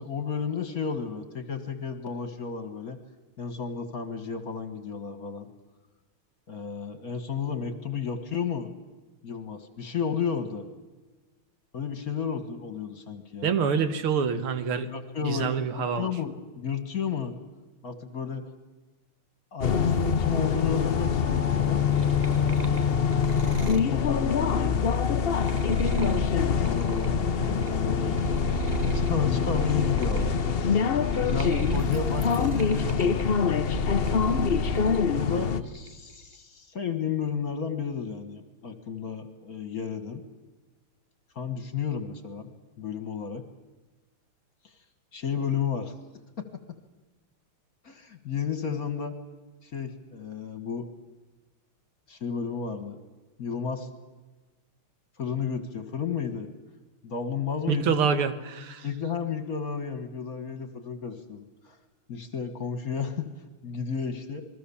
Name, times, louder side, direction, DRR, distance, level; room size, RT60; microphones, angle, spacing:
voice 1, 0.0-3.0 3.4-5.5 6.5-8.7 9.2-10.7 11.7-13.5 14.8-17.3 17.8-18.5 19.5-21.8 23.1-24.9 25.2-25.3 25.6-30.8 31.1-33.7 35.1-40.2 41.4-42.5 42.8-43.4 45.1-45.9 46.4-46.5 47.8-49.2 49.6-50.9 52.1-53.0 53.4-53.9 55.2-56.5 57.0-57.9 58.8-61.8 62.1-63.3 63.6-64.4, left 6 dB, 45° left, 8 dB, 2.1 m, -32 dB
voice 2, 13.4-14.9 15.2-16.1 57.7-58.8, right 6 dB, 80° right, 10 dB, 2.3 m, -26 dB
sound 1, 19.6-35.6, left 6 dB, 75° left, 0.5 m, -25 dB
sound 2, 21.6-27.7 28.0-35.0 35.4-36.1, right 2 dB, 30° right, 0.9 m, -35 dB
28.0 x 21.5 x 7.2 m, 1.2 s
omnidirectional pair, 2.4 m